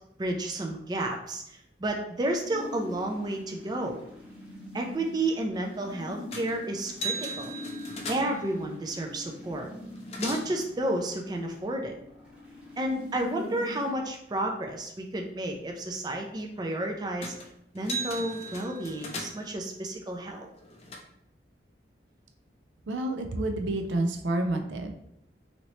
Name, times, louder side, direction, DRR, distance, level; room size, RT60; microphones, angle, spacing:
voice 1, 0.2-4.0 4.7-7.5 8.1-9.7 10.2-12.0 12.8-17.3 17.7-20.5, right 1 dB, 25° right, 2 dB, 0.3 m, -31 dB
sound 1, 2.4-13.9, left 2 dB, 5° right, 0.7 m, -44 dB
sound 2, 6.3-6.6 6.9-8.5 9.5-9.6 9.8-10.6 17.2-17.5 17.7-19.6 20.3-21.0, right 1 dB, 35° left, 0.5 m, -37 dB
voice 2, 22.9-24.9, right 2 dB, 85° right, 5 dB, 0.4 m, -29 dB
2.8 x 2.7 x 3.1 m, 0.75 s
head